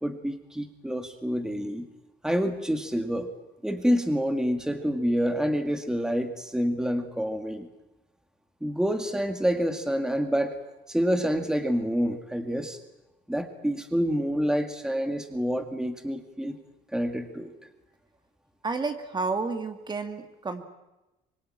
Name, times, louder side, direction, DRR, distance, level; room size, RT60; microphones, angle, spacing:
voice 1, 0.0-1.9 2.2-3.3 3.6-7.7 8.6-10.6 10.9-12.8 13.3-16.6 16.9-17.5, equal, 5° right, 7 dB, 2.1 m, -27 dB
voice 2, 18.6-20.6, right 4 dB, 25° right, 7 dB, 2.2 m, -31 dB
25.5 x 21.5 x 8.9 m, 1.0 s
cardioid pair, 110°, 17 cm